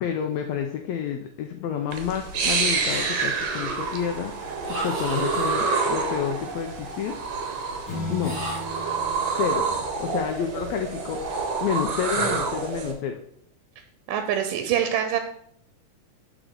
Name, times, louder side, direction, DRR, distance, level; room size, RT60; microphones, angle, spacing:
voice 1, 0.0-7.2 8.1-8.4 9.3-11.3 11.6-13.2, left 8 dB, 90° left, 4 dB, 1.5 m, -29 dB
sound 1, 1.9-12.9, right 4 dB, 70° right, 1.6 m, -28 dB
sound 2, 2.8-3.6 4.6-5.8 8.2-8.9, right 2 dB, 25° right, 1.5 m, -36 dB
sound 3, 7.9-10.5, left 2 dB, 65° left, 1.3 m, -36 dB
voice 2, 14.1-15.2, right 9 dB, 85° right, 7 dB, 2.2 m, -24 dB
7.9 x 4.7 x 3.8 m, 0.68 s
omnidirectional pair, 3.8 m